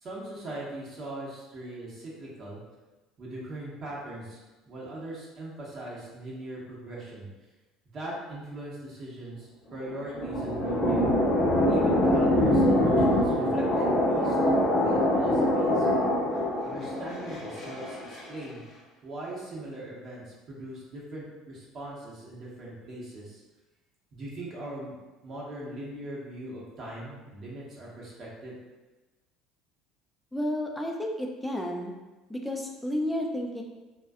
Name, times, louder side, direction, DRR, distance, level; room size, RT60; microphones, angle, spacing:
voice 1, 0.0-2.6 3.2-7.3 7.9-11.1 11.7-15.9 16.6-18.6 19.0-23.4 24.1-25.0 25.2-28.6, right 1 dB, 45° right, -5 dB, 0.8 m, -40 dB
sound 1, 9.7-18.2, left 1 dB, 35° left, 0.8 m, -24 dB
voice 2, 30.3-31.9 32.3-33.6, left 1 dB, 5° left, 1 dB, 0.4 m, -31 dB
2.5 x 2.1 x 2.3 m, 1.1 s
supercardioid pair, 95°, 0 cm